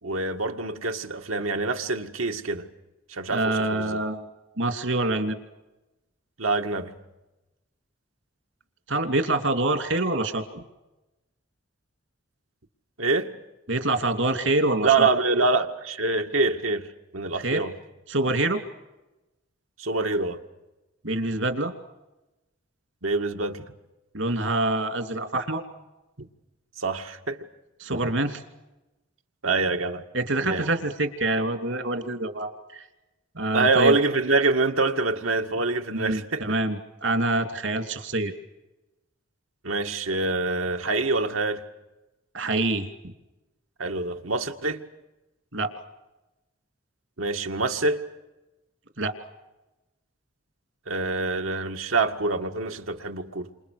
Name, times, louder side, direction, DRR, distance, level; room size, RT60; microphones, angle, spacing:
voice 1, 0.0-2.7 3.1-3.9 6.4-6.9 13.0-13.3 14.8-16.9 17.1-17.7 19.8-20.4 23.0-23.6 26.8-27.4 29.4-30.0 30.4-30.7 33.5-36.4 39.6-41.6 43.8-44.8 47.2-48.0 50.9-53.5, right 3 dB, 90° right, 2.0 m, -25 dB
voice 2, 3.3-4.3 4.6-5.4 8.9-10.6 13.7-15.1 17.4-17.6 18.1-18.6 21.0-21.7 24.1-25.6 27.8-28.4 30.1-32.8 33.3-33.9 35.9-38.3 42.3-42.9 45.5-45.7 49.0-49.1, right 2 dB, 70° right, 2.9 m, -26 dB
29.5 x 27.0 x 6.7 m
head